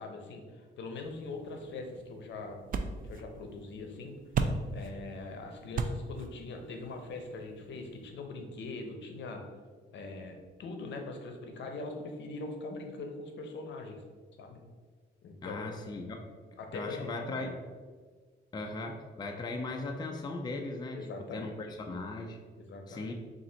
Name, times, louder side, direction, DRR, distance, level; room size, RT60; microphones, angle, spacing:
voice 1, 0.0-2.6 3.0-4.2 4.7-9.4 9.9-14.0 14.4-14.6 15.2-16.0 16.6-17.4 20.9-21.5 22.6-23.1, left 3 dB, 65° left, 4 dB, 0.7 m, -42 dB
sound 1, 1.0-8.1, right 4 dB, 45° right, 0.4 m, -38 dB
voice 2, 15.4-16.3 16.7-17.6 18.5-22.4 22.9-23.1, left 2 dB, 20° left, 2 dB, 0.4 m, -38 dB
3.7 x 2.6 x 4.3 m, 1.5 s
cardioid pair, 90°, 20 cm